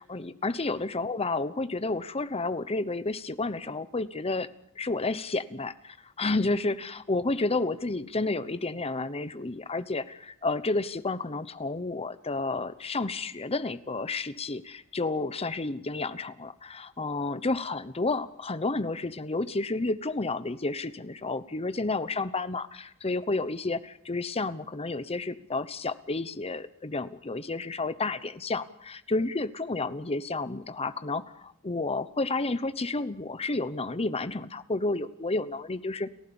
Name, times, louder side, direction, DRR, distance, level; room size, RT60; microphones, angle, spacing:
voice 1, 0.0-4.5 4.8-36.1, left 3 dB, 25° left, 14 dB, 0.9 m, -31 dB
30.0 x 15.0 x 7.1 m, 0.75 s
head